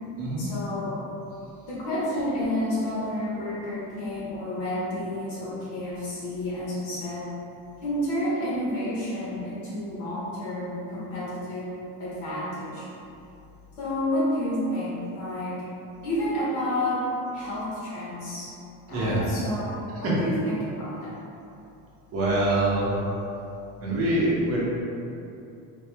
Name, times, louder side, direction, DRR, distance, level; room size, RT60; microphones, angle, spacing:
voice 1, 0.4-1.0 1.7-7.3 7.8-11.7 12.0-12.9 13.8-15.6 16.0-17.0 17.3-18.5 18.9-21.1, left 1 dB, 85° left, -7 dB, 1.3 m, -30 dB
voice 2, 18.9-19.3 20.0-20.1 22.1-22.9 23.8-24.6, right 1 dB, 40° right, -6 dB, 0.8 m, -24 dB
3.6 x 2.0 x 3.4 m, 2.7 s
cardioid pair, 160°, 37 cm